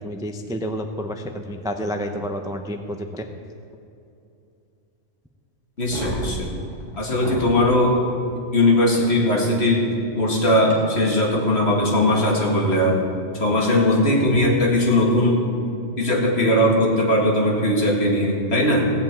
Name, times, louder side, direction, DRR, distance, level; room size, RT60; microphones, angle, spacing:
voice 1, 0.0-3.3, equal, 5° right, 5 dB, 0.4 m, -29 dB
voice 2, 5.8-6.5 7.0-8.0 8.5-9.9 10.2-13.0 13.3-15.4 16.0-18.9, left 1 dB, 50° left, -2 dB, 2.4 m, -19 dB
sound 1, 5.8-7.6 8.9-9.0 10.7-10.8 12.7-12.8 14.2-14.4, equal, 20° right, 3.2 m, -33 dB
16.0 x 5.7 x 8.9 m, 2.7 s
omnidirectional pair, 1.4 m